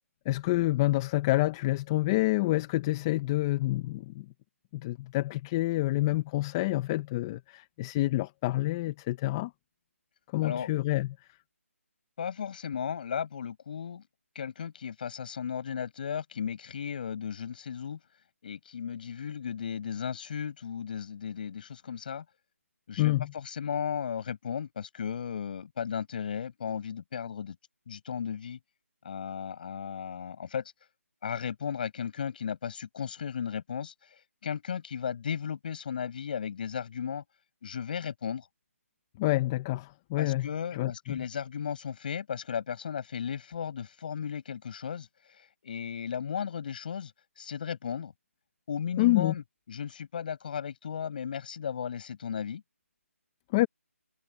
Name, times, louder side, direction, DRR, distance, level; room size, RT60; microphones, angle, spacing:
voice 1, 0.2-4.2 4.7-9.5 10.3-11.2 23.0-23.3 39.2-41.2 49.0-49.3 53.5-53.7, left 18 dB, 15° left, 0.9 m, -28 dB
voice 2, 10.4-10.7 12.2-14.0 14.4-18.0 18.4-22.3 22.9-27.6 27.9-28.6 29.0-30.7 31.2-37.2 37.6-38.5 40.2-48.1 48.7-49.4 49.7-52.6, left 7 dB, 35° left, 7.0 m, -35 dB
figure-of-eight pair, 165°, 8 cm